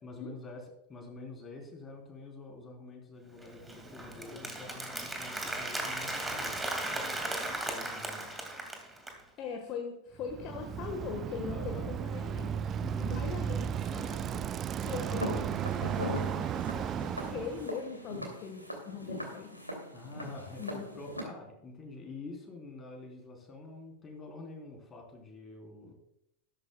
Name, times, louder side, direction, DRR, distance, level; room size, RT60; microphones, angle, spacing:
voice 1, 0.0-0.6 0.9-6.6 6.9-7.3 7.6-8.3 11.5-11.9 12.8-13.3 19.9-25.9, left 2 dB, 20° left, 1 dB, 3.7 m, -47 dB
Applause, 3.4-9.2, right 1 dB, 10° right, 2.2 m, -37 dB
voice 2, 9.4-12.6 13.0-14.5 14.8-19.6 20.6-20.9, left 6 dB, 35° left, 4 dB, 1.4 m, -41 dB
Bicycle, 10.2-17.7, right 8 dB, 25° right, 0.5 m, -34 dB
Walk footsteps, 15.2-21.2, equal, 90° left, 2.6 m, -40 dB
13.5 x 13.0 x 2.3 m, 0.81 s
figure-of-eight pair, 90°, 0 cm